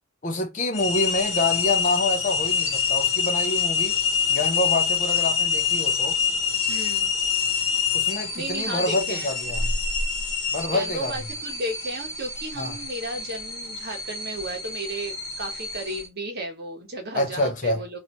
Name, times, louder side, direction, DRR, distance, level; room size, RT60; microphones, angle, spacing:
voice 1, 0.2-3.9 4.3-6.2 7.9-9.7 10.5-11.1 12.6-12.8 17.1-17.9, left 2 dB, 35° left, 0.6 m, -27 dB
sound 1, 0.7-16.1, left 6 dB, 60° left, 1.4 m, -26 dB
voice 2, 6.7-7.1 8.3-9.3 10.7-18.0, right 1 dB, 45° right, 1.0 m, -34 dB
3.1 x 2.6 x 2.9 m
head